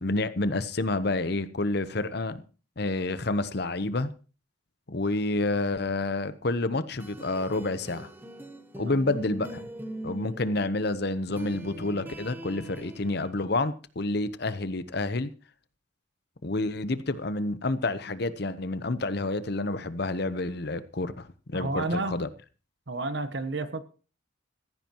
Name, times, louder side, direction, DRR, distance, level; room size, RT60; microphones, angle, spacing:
voice 1, 0.0-2.4 2.8-4.1 4.9-8.1 8.8-9.7 10.0-15.3 16.4-22.3, left 2 dB, 55° left, 0.9 m, -29 dB
sound 1, 6.7-13.3, right 1 dB, 10° right, 1.1 m, -42 dB
voice 2, 21.5-22.2 22.9-23.8, right 2 dB, 60° right, 1.2 m, -31 dB
15.0 x 15.0 x 3.0 m
head